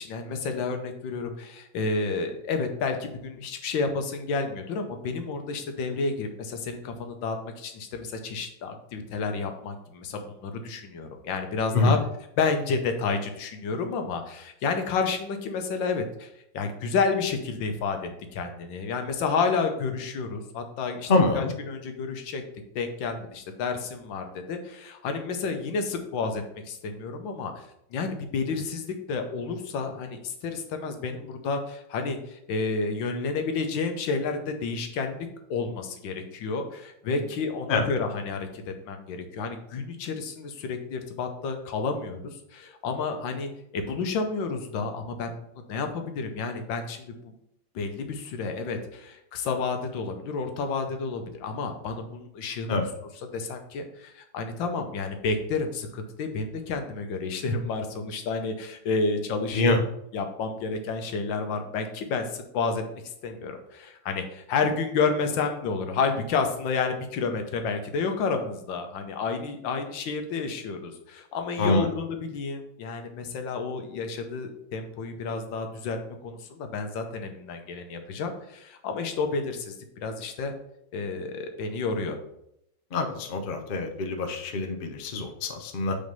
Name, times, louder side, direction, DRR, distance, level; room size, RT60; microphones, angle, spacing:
voice 1, 0.0-12.0 12.4-21.1 21.4-22.4 22.7-27.6 27.9-45.3 45.7-47.3 47.7-52.8 53.3-59.7 60.1-62.8 63.2-76.0 76.2-80.5 80.9-82.2, left 4 dB, 85° left, 6 dB, 1.6 m, -30 dB
voice 2, 21.1-21.5 37.7-37.9 52.7-52.9 59.5-59.8 71.6-71.9 82.9-86.0, left 3 dB, 55° left, 5 dB, 0.6 m, -25 dB
5.1 x 3.9 x 5.3 m, 0.78 s
omnidirectional pair, 2.0 m